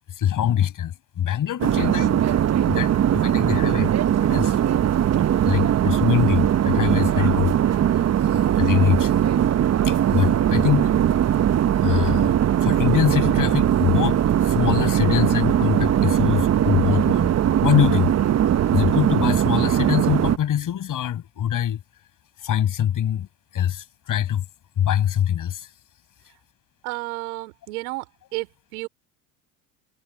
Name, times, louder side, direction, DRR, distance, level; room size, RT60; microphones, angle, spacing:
voice 1, 0.1-2.4 2.6-3.9 4.2-4.6 5.4-9.1 9.8-10.9 11.8-12.3 12.6-17.3 17.6-18.1 18.7-21.8 22.4-23.3 23.5-24.4 24.8-25.7, left 10 dB, 45° left, 5.8 m, -24 dB
sound 1, 1.6-20.4, right 10 dB, 35° right, 1.1 m, -20 dB
voice 2, 26.8-28.1 28.3-28.9, right 22 dB, 80° right, 4.8 m, -31 dB
hypercardioid pair, 75°, 44 cm